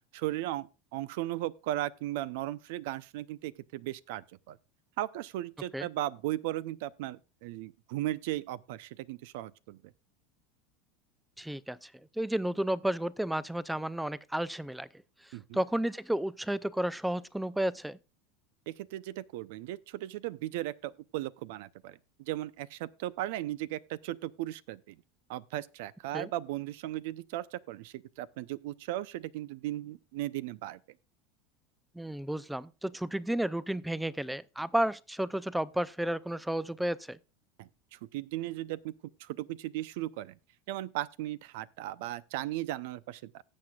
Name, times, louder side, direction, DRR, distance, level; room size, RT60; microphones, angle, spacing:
voice 1, 0.1-4.6 5.0-9.8 15.3-15.6 18.7-25.0 25.3-30.8 37.6-38.9 39.2-40.4 40.7-43.4, right 15 dB, 70° right, 0.5 m, -37 dB
voice 2, 11.4-11.9 12.2-14.9 15.5-18.0 26.1-26.3 31.9-37.2, right 1 dB, 5° right, 0.4 m, -32 dB
18.0 x 7.8 x 2.3 m
supercardioid pair, 140°, 0 cm